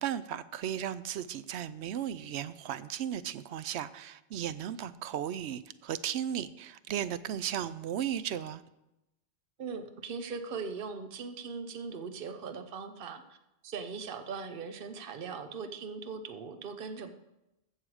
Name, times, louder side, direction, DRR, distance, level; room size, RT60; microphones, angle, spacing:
voice 1, 0.0-8.6, right 10 dB, 85° right, 15 dB, 0.9 m, -35 dB
voice 2, 9.6-13.2 13.6-17.1, right 5 dB, 60° right, 8 dB, 1.0 m, -40 dB
15.0 x 6.6 x 4.8 m, 0.93 s
omnidirectional pair, 1.1 m